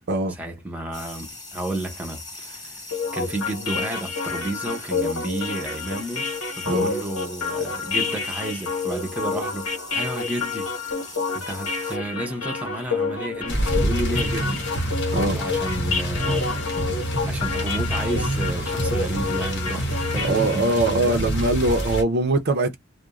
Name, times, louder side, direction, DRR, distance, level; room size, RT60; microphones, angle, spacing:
voice 1, 0.3-2.8 3.1-11.0 11.3-14.8 15.1-16.7 17.2-21.3, right 1 dB, 5° right, 0.6 m, -32 dB
sound 1, 0.9-12.0, left 2 dB, 20° left, 1.0 m, -41 dB
sound 2, 2.9-20.8, left 4 dB, 85° left, 1.2 m, -29 dB
sound 3, 13.5-22.0, equal, 60° left, 0.9 m, -27 dB
voice 2, 15.1-15.4 20.2-22.8, right 2 dB, 50° right, 0.5 m, -22 dB
2.4 x 2.1 x 3.0 m
head